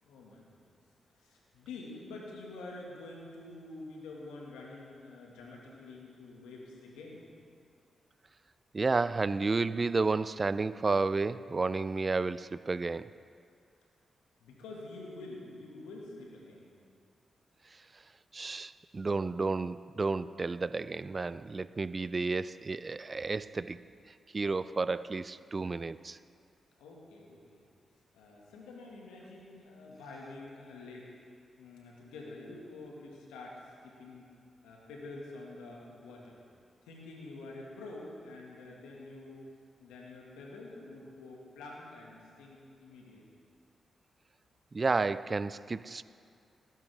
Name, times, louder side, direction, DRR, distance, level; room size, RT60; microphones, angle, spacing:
voice 1, 0.0-0.5 1.1-7.2 14.4-16.7 26.8-27.7 28.1-31.2 31.6-34.3 34.6-36.4 36.8-39.4 39.8-43.2, left 2 dB, 90° left, -2 dB, 1.9 m, -47 dB
voice 2, 8.7-13.1 18.3-23.8 24.3-26.2 44.7-46.0, right 3 dB, 40° right, 16 dB, 0.4 m, -31 dB
18.5 x 10.5 x 3.6 m, 2.3 s
supercardioid pair, 40°, 0 cm